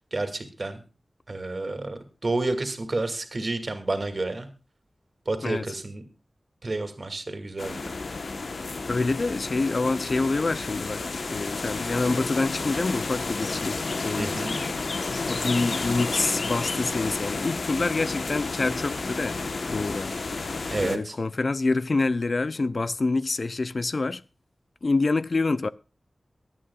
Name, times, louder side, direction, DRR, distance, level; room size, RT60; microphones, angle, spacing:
voice 1, 0.1-0.8 1.3-4.5 5.3-6.0 6.6-7.8 14.2-14.6 20.7-21.1, right 2 dB, 50° right, 2.4 m, -30 dB
sound 1, 7.6-21.0, left 3 dB, 75° left, 1.1 m, -31 dB
voice 2, 8.9-11.0 11.3-14.4 15.2-19.4 19.7-20.1 20.8-24.2 24.8-25.7, left 3 dB, 60° left, 0.5 m, -26 dB
23.5 x 8.8 x 2.4 m
cardioid pair, 55°, 0 cm